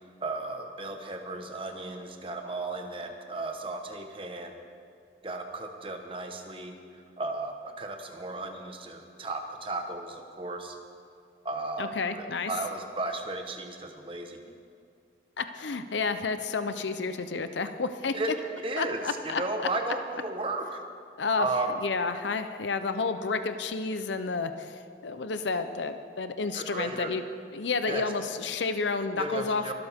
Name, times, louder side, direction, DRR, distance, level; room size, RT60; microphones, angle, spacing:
voice 1, 0.2-4.5 5.2-10.8 11.4-14.4 18.1-18.3 18.6-20.8 21.4-21.8 26.5-27.1 27.9-28.1 29.2-29.7, right 2 dB, 30° right, 4 dB, 1.2 m, -34 dB
voice 2, 11.8-12.5 15.4-18.1 18.8-19.4 21.2-21.5 21.8-27.2 27.5-29.7, left 4 dB, 90° left, 9 dB, 0.7 m, -30 dB
23.5 x 13.0 x 3.6 m, 2.3 s
head